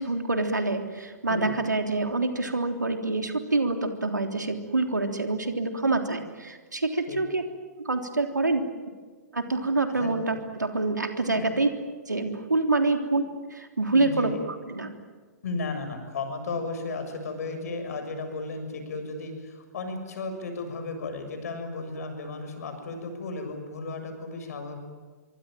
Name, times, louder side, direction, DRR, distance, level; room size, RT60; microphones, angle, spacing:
voice 1, 0.0-7.4 7.8-8.6 9.3-11.7 12.1-14.3 14.7-14.9, right 3 dB, 85° right, 5 dB, 3.4 m, -26 dB
voice 2, 13.9-14.4 15.4-24.8, left 3 dB, 60° left, 7 dB, 7.0 m, -34 dB
24.5 x 24.5 x 9.1 m, 1.4 s
figure-of-eight pair, 115°, 10 cm